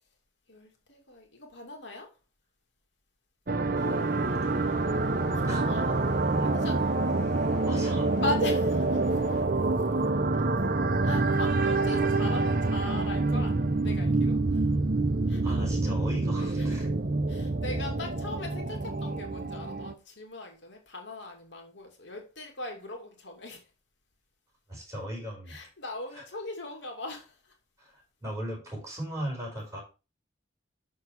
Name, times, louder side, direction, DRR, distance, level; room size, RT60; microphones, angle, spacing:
voice 1, 0.5-2.1 5.3-6.1 6.4-7.0 8.2-9.0 10.3-10.8 11.0-14.6 15.3-15.6 16.6-16.7 17.3-23.6 25.5-27.5, left 2 dB, 80° left, 2.6 m, -39 dB
sound 1, 3.5-19.9, right 2 dB, 50° right, 0.8 m, -27 dB
sound 2, 3.7-9.4, left 2 dB, 60° left, 4.2 m, -48 dB
voice 2, 7.6-8.1 15.4-16.9 24.7-25.7 26.1-26.2 27.8-29.8, right 1 dB, 15° right, 4.5 m, -37 dB
8.2 x 6.4 x 4.7 m
head